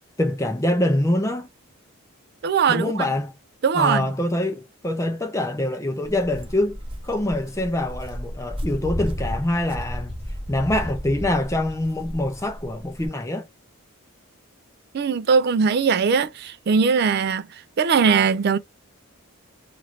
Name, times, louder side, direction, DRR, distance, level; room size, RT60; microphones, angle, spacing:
voice 1, 0.2-1.5 2.7-3.4 3.7-6.8 7.0-10.2 10.5-13.5, left 1 dB, 15° left, 0.5 m, -24 dB
voice 2, 2.4-3.0 3.6-4.1 14.9-17.5 17.8-18.6, right 5 dB, 45° right, 0.3 m, -20 dB
Walk footsteps, 6.0-13.1, equal, 25° right, 0.8 m, -33 dB
3.1 x 2.5 x 2.9 m
head